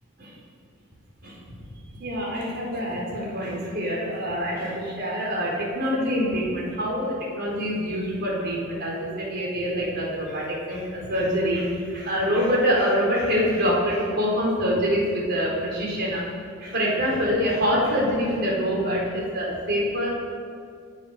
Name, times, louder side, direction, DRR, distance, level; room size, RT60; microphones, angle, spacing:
voice 1, 1.2-1.6 2.0-16.2 16.6-20.1, equal, 45° right, -3 dB, 4.6 m, -25 dB
24.5 x 8.3 x 6.6 m, 2.2 s
head